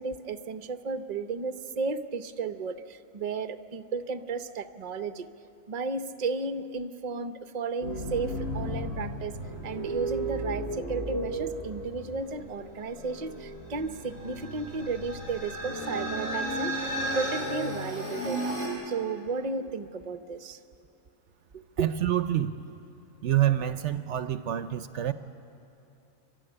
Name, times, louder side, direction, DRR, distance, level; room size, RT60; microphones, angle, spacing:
voice 1, 0.0-5.3 5.7-9.3 9.6-18.6 18.9-20.6 21.5-21.9, right 4 dB, 40° right, 9 dB, 0.8 m, -34 dB
sound 1, 7.8-18.7, right 1 dB, 55° left, 5.7 m, -34 dB
voice 2, 21.8-22.5 23.2-25.1, right 12 dB, 70° right, 11 dB, 0.9 m, -27 dB
28.5 x 12.5 x 9.8 m, 3.0 s
omnidirectional pair, 1.3 m